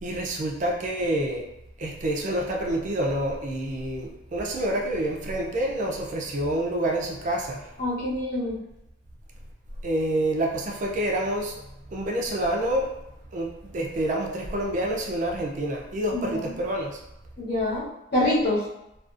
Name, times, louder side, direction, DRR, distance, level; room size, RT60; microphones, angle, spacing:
voice 1, 0.0-1.4 1.8-7.6 9.8-11.5 11.9-12.9 13.3-13.5 13.7-16.9, right 1 dB, 40° right, 0 dB, 0.4 m, -27 dB
voice 2, 7.8-8.6 16.1-16.5 17.4-17.8 18.1-18.6, left 1 dB, 55° left, -7 dB, 0.9 m, -25 dB
2.4 x 2.3 x 2.4 m, 0.89 s
head